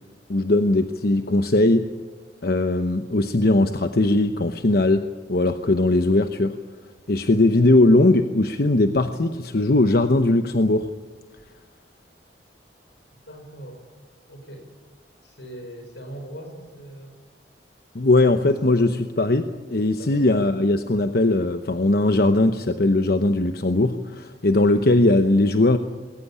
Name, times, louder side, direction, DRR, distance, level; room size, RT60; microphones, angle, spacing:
voice 1, 0.3-1.9 2.4-6.6 7.1-10.9 17.9-25.8, left 2 dB, 60° left, 8 dB, 1.0 m, -19 dB
voice 2, 13.3-13.8 14.3-14.7 15.2-17.2 20.0-20.3, right 1 dB, 85° left, 6 dB, 6.1 m, -40 dB
21.0 x 18.0 x 8.8 m, 1.4 s
head